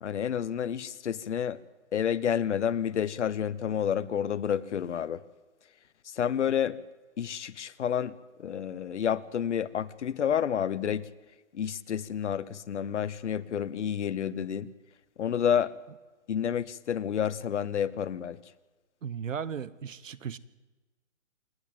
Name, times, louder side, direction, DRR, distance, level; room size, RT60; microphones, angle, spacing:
voice 1, 0.0-1.6 1.9-5.2 6.1-6.8 7.2-8.1 8.4-11.1 11.5-14.7 15.2-15.7 16.3-18.4, left 8 dB, 65° left, 15 dB, 1.0 m, -29 dB
voice 2, 19.0-20.4, right 7 dB, 75° right, 18 dB, 1.2 m, -36 dB
28.0 x 10.5 x 9.1 m, 1.2 s
hypercardioid pair, 160°, 39 cm